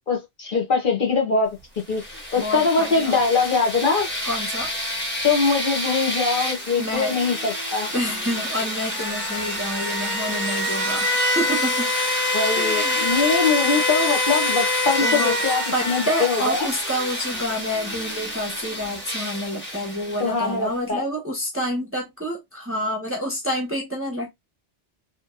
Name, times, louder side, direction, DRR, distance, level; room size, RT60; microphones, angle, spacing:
voice 1, 0.1-1.5 1.9-2.0 2.3-4.1 5.2-7.9 12.3-16.6 20.2-21.0, left 4 dB, 55° left, 1.1 m, -22 dB
sound 1, 1.8-20.5, left 1 dB, 10° left, 1.1 m, -26 dB
voice 2, 2.4-3.2 4.2-4.7 6.8-7.2 7.9-11.9 12.6-13.2 15.0-24.3, equal, 15° right, 0.9 m, -28 dB
3.0 x 3.0 x 2.4 m
omnidirectional pair, 1.1 m